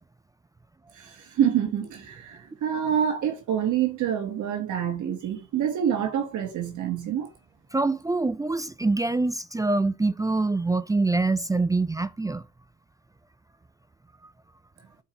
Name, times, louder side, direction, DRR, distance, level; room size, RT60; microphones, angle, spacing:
voice 1, 0.9-7.3, right 9 dB, 75° right, 1.4 m, -27 dB
voice 2, 7.7-12.4, right 3 dB, 10° right, 0.3 m, -25 dB
13.5 x 4.6 x 2.9 m
cardioid pair, 90°, 30 cm